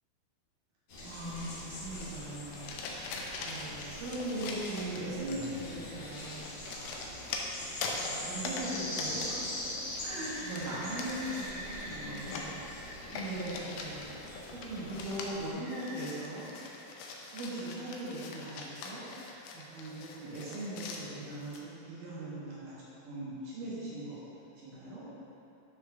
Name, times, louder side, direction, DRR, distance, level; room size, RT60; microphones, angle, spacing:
sound 1, 0.9-15.5, left 1 dB, 65° left, 2.0 m, -43 dB
voice 1, 1.0-7.0 8.0-9.5 10.0-12.6 13.1-14.1 14.5-16.5 17.3-19.0 19.5-22.7 23.1-24.2 24.6-25.0, right 1 dB, 75° right, -8 dB, 1.9 m, -40 dB
sound 2, 2.0-21.6, left 3 dB, 90° left, 2.2 m, -43 dB
Bird, 10.1-13.8 15.6-17.3, equal, 60° right, 2.7 m, -46 dB
12.5 x 5.1 x 2.3 m, 2.9 s
omnidirectional pair, 5.3 m